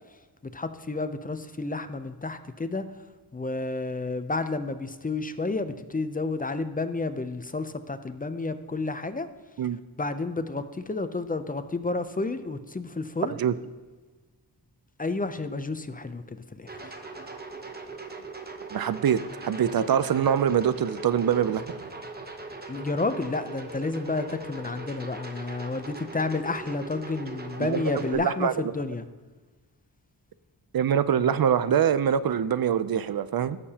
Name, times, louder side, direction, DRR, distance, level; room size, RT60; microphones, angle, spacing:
voice 1, 0.5-2.9 3.3-9.3 10.0-13.4 15.0-16.8 22.7-29.0, left 3 dB, 20° left, 10 dB, 0.5 m, -31 dB
sound 1, 16.7-28.1, right 2 dB, 25° right, 0.9 m, -40 dB
voice 2, 18.7-21.6 27.6-27.8 28.1-28.5 30.7-33.6, right 8 dB, 60° right, 14 dB, 0.5 m, -24 dB
16.5 x 6.7 x 2.8 m, 1.4 s
wide cardioid pair, 115°, 41 cm